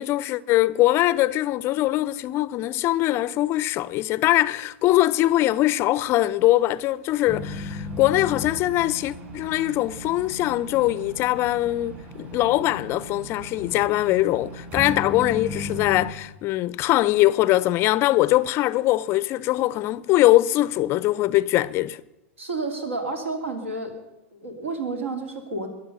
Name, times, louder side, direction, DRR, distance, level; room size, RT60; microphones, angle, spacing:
voice 1, 0.0-22.0, left 16 dB, 40° left, 0.4 m, -22 dB
sound 1, 7.3-16.1, left 1 dB, 35° right, 7.1 m, -36 dB
voice 2, 22.4-23.9 24.3-25.7, right 3 dB, 80° right, 3.0 m, -30 dB
21.0 x 7.9 x 6.9 m
hypercardioid pair, 100°, 7 cm